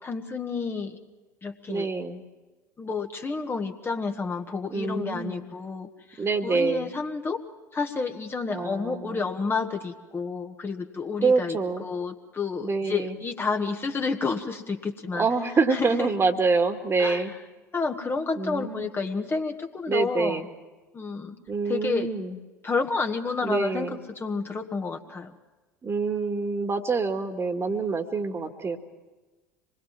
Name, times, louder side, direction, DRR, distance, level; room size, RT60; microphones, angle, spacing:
voice 1, 0.0-1.0 1.4-1.9 2.8-7.4 7.7-15.3 15.7-16.1 17.0-17.2 17.7-20.4 20.9-21.4 21.7-22.1 22.6-25.3, left 4 dB, 25° left, 4 dB, 1.6 m, -30 dB
voice 2, 1.7-2.2 4.7-5.5 6.2-6.9 8.5-9.2 11.2-11.8 12.6-13.2 15.1-17.3 18.4-18.9 19.9-20.5 21.5-22.4 23.4-24.0 25.8-28.8, right 4 dB, 25° right, 7 dB, 2.1 m, -26 dB
25.5 x 21.0 x 7.4 m, 1.2 s
figure-of-eight pair, 70°, 10 cm